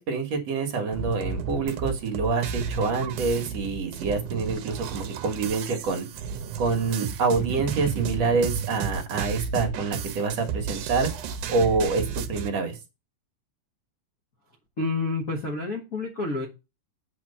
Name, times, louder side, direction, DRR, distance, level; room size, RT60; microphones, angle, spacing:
voice 1, 0.0-6.1 6.6-11.1 11.5-12.8, right 4 dB, 55° right, 3 dB, 2.5 m, -26 dB
sound 1, 0.9-12.5, right 6 dB, 75° right, 2.2 m, -32 dB
voice 2, 14.8-16.5, left 3 dB, 75° left, 1 dB, 0.7 m, -29 dB
8.2 x 4.8 x 5.7 m, 0.27 s
omnidirectional pair, 4.0 m